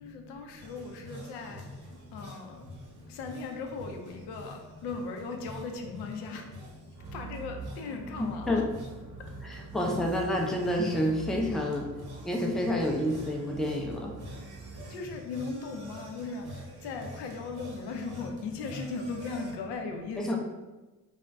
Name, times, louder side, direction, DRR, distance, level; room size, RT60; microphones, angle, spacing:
voice 1, 0.0-1.6 2.1-2.5 3.2-4.6 4.8-6.4 7.1-8.6 14.9-16.4 16.8-20.4, left 4 dB, 85° left, 3 dB, 0.5 m, -37 dB
sound 1, 0.6-19.5, equal, 65° right, 0.9 m, -47 dB
sound 2, 6.9-15.2, right 4 dB, 90° right, 0.7 m, -45 dB
voice 2, 8.2-8.7 9.4-11.9 12.2-14.1 20.2-20.4, left 1 dB, ahead, 0 dB, 0.4 m, -29 dB
2.4 x 2.1 x 3.4 m, 1.1 s
cardioid pair, 75°, 39 cm